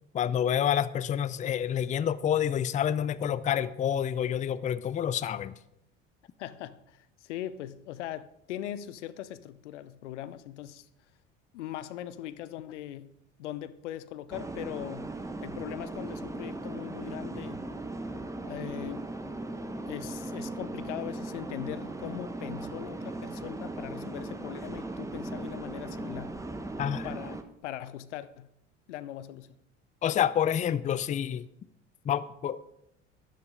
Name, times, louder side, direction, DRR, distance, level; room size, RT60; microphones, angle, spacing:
voice 1, 0.1-5.5 26.8-27.1 30.0-31.5 32.0-32.6, left 9 dB, 20° left, 0.5 m, -28 dB
voice 2, 6.4-10.9 11.5-13.1 13.4-15.1 15.4-17.7 18.4-19.1 19.9-26.3 27.0-28.5 28.9-29.5, left 12 dB, 75° left, 0.7 m, -40 dB
sound 1, 14.3-27.4, right 2 dB, 10° right, 1.0 m, -38 dB
13.0 x 10.5 x 3.7 m
figure-of-eight pair, 60°, 36 cm